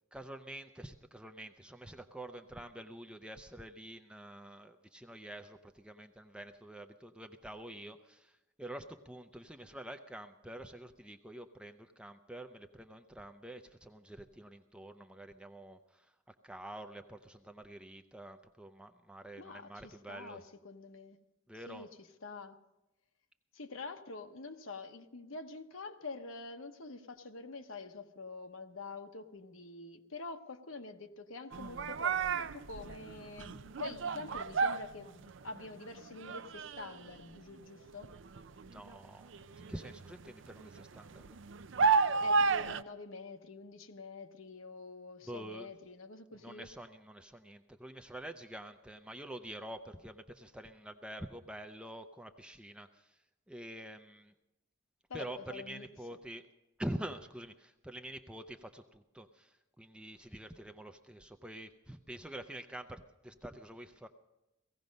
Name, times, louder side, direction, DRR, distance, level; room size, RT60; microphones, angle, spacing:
voice 1, 0.1-20.4 21.5-21.9 38.7-41.4 45.2-45.7 46.4-53.2 53.5-54.3 55.1-56.5 56.8-64.1, right 1 dB, 5° right, 7 dB, 0.5 m, -47 dB
voice 2, 19.3-21.2 21.7-22.6 23.5-38.1 42.2-46.7 55.1-55.9, left 3 dB, 70° left, 6 dB, 1.1 m, -46 dB
sound 1, 31.5-35.7 36.0-37.4 37.9-42.8, right 4 dB, 60° right, 0.5 m, -33 dB
17.5 x 16.0 x 5.3 m, 0.98 s
head